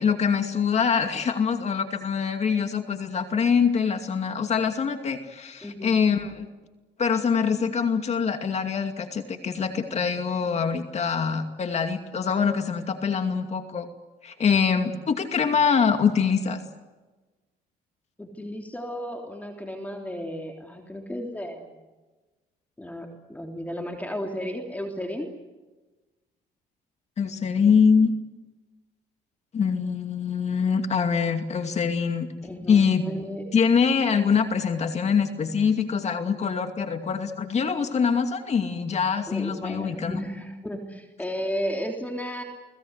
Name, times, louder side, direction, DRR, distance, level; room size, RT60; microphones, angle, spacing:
voice 1, 0.0-6.5 7.0-13.9 14.2-16.6 27.2-28.1 29.5-32.3 32.7-33.0 33.5-40.2, left 6 dB, 40° left, 6 dB, 2.5 m, -24 dB
voice 2, 5.6-5.9 18.2-21.8 22.8-25.3 32.4-33.4 39.3-42.4, equal, 10° left, 2 dB, 3.4 m, -34 dB
29.5 x 20.0 x 8.2 m, 1.2 s
cardioid pair, 110°, 17 cm